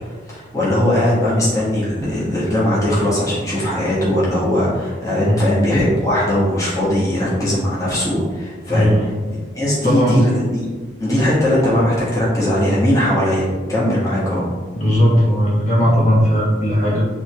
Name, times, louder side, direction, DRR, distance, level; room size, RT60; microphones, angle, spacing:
voice 1, 0.0-9.1 9.5-10.3 10.6-10.7 11.0-14.5, left 1 dB, 20° left, -7 dB, 1.5 m, -19 dB
voice 2, 8.7-9.0 9.8-10.3 14.7-17.1, equal, 40° left, -6 dB, 1.4 m, -16 dB
8.9 x 3.4 x 3.1 m, 1.4 s
head